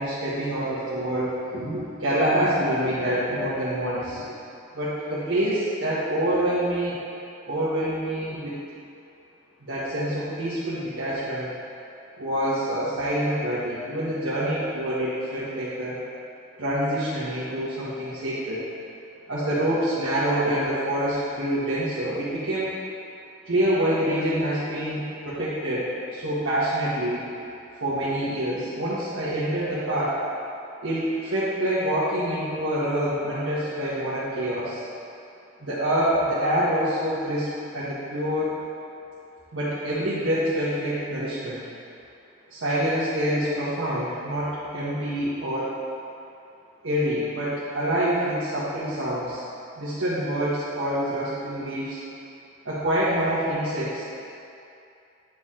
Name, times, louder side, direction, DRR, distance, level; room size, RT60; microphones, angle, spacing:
voice 1, 0.0-4.2 4.7-6.9 7.4-8.5 9.6-11.5 12.2-16.0 16.6-18.6 19.3-22.7 23.4-27.2 27.8-30.2 30.8-34.8 35.6-37.5 37.7-38.6 39.5-41.6 42.5-45.7 46.8-49.4 49.8-52.0 52.6-54.2, right 1 dB, 85° right, -11 dB, 1.5 m, -26 dB
9.2 x 4.6 x 3.8 m, 2.6 s
head